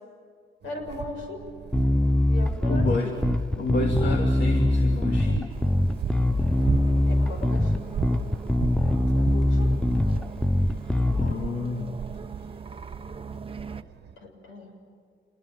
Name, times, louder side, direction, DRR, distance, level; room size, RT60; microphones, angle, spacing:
voice 1, 0.6-1.4 2.3-3.3 7.1-7.7 9.1-9.8 14.2-14.7, left 2 dB, 80° left, 4 dB, 6.5 m, -38 dB
sound 1, 0.6-14.2, right 8 dB, 55° right, 1.4 m, -38 dB
Bass guitar, 1.7-11.3, left 1 dB, 5° left, 0.6 m, -23 dB
voice 2, 2.7-3.1 3.6-5.5 11.2-11.9, left 2 dB, 60° left, 2 dB, 2.7 m, -29 dB
sound 2, 5.5-13.8, right 5 dB, 25° right, 1.0 m, -40 dB
27.0 x 21.0 x 9.3 m, 2.2 s
cardioid pair, 90°, 20 cm